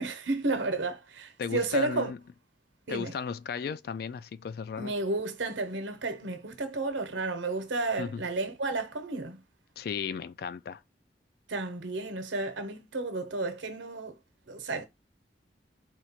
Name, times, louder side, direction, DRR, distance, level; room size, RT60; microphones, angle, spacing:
voice 1, 0.0-2.1 2.9-3.2 4.8-9.4 11.5-14.2 14.5-14.9, right 3 dB, 90° right, 1.0 m, -32 dB
voice 2, 1.4-2.2 2.9-4.9 8.0-8.2 9.8-10.8, left 6 dB, 55° left, 0.3 m, -35 dB
4.4 x 2.4 x 4.3 m
head